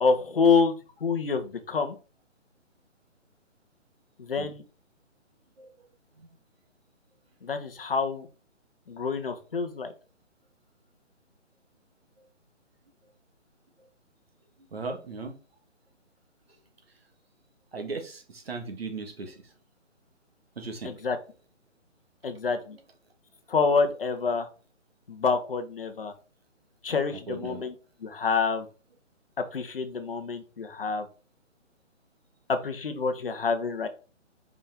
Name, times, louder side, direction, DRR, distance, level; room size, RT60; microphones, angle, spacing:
voice 1, 0.0-0.7 1.0-2.0 4.2-4.6 7.4-8.3 8.9-9.9 20.8-21.2 22.2-22.8 23.5-24.5 25.1-26.1 26.8-27.7 28.0-28.7 29.5-31.1 32.5-33.9, left 4 dB, 50° left, 1.1 m, -27 dB
voice 2, 14.6-15.3 17.7-19.5 20.5-21.1 22.6-22.8 27.3-27.7, right 3 dB, 50° right, 1.6 m, -38 dB
5.3 x 5.3 x 3.5 m
hypercardioid pair, 170°, 37 cm